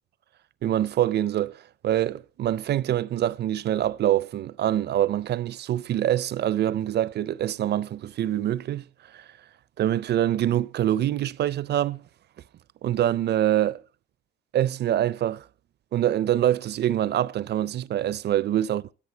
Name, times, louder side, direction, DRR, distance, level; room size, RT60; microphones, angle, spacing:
voice 1, 0.6-8.9 9.1-9.2 9.8-12.0 12.8-13.8 14.5-15.4 15.9-18.8, right 12 dB, 55° right, 0.5 m, -25 dB
13.5 x 10.5 x 4.3 m
cardioid pair, 90°, 20 cm